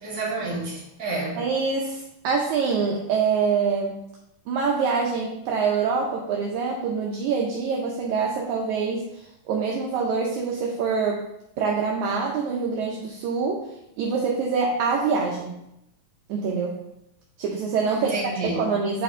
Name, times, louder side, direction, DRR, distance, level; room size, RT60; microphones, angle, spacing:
voice 1, 0.0-1.4 17.9-18.7, right 2 dB, 25° right, -7 dB, 2.4 m, -29 dB
voice 2, 1.4-4.0 4.5-11.2 11.6-15.6 16.3-16.8 17.4-18.1 18.4-19.0, right 5 dB, 75° right, -1 dB, 1.9 m, -25 dB
8.2 x 4.6 x 3.6 m, 0.83 s
omnidirectional pair, 3.8 m